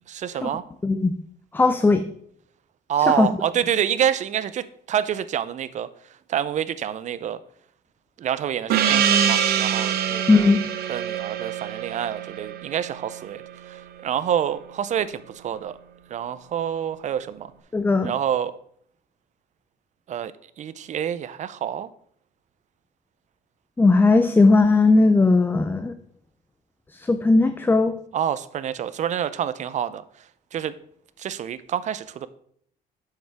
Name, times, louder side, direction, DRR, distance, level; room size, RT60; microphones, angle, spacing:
voice 1, 0.1-0.6 2.9-5.9 6.3-7.4 8.2-10.5 10.9-13.4 13.7-15.8 16.1-17.5 18.0-18.5 20.1-20.3 20.6-21.9 28.1-30.0 30.5-30.7 31.2-32.3, right 9 dB, 45° right, 15 dB, 0.5 m, -27 dB
voice 2, 0.8-1.1 1.5-2.0 3.1-3.3 10.3-10.6 17.7-18.1 23.8-25.9 27.1-27.9, left 3 dB, 10° left, 9 dB, 0.4 m, -17 dB
Gong, 8.7-13.8, right 8 dB, 65° right, 0.9 m, -24 dB
7.6 x 6.6 x 3.5 m, 0.64 s
cardioid pair, 110°, 17 cm